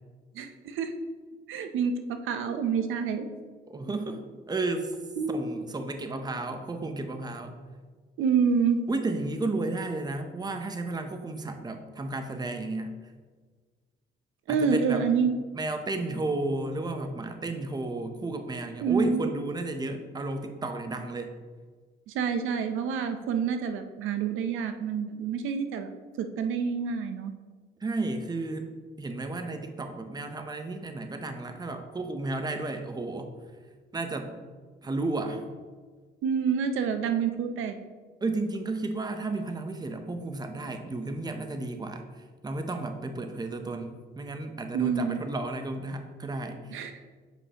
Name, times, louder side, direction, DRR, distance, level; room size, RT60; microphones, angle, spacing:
voice 1, 0.3-0.9 1.5-3.3 5.2-5.4 8.2-8.8 14.5-15.4 18.8-19.3 22.1-25.9 26.2-27.3 36.2-37.8 44.7-45.2 46.7-46.9, right 6 dB, 85° right, 7 dB, 0.6 m, -27 dB
voice 2, 3.7-5.0 5.3-7.6 8.9-12.9 14.5-15.1 15.5-21.3 27.8-28.7 29.0-33.3 33.9-34.4 34.8-35.4 38.2-46.9, right 2 dB, 20° right, 6 dB, 0.7 m, -33 dB
7.7 x 4.9 x 2.9 m, 1.5 s
cardioid pair, 90°, 20 cm